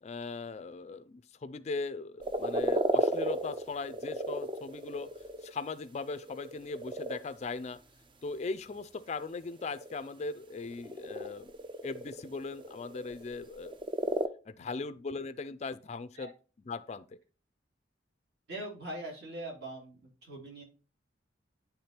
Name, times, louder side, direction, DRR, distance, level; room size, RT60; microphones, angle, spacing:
voice 1, 0.0-5.1 5.4-7.8 8.2-11.5 11.8-13.7 14.5-16.3 16.7-17.2, left 4 dB, 35° left, 0.3 m, -39 dB
sound 1, 2.2-5.5 6.1-7.2 9.2-14.3, right 1 dB, 25° right, 0.5 m, -33 dB
voice 2, 18.5-20.6, right 1 dB, 55° right, 2.8 m, -42 dB
9.4 x 3.6 x 4.3 m
head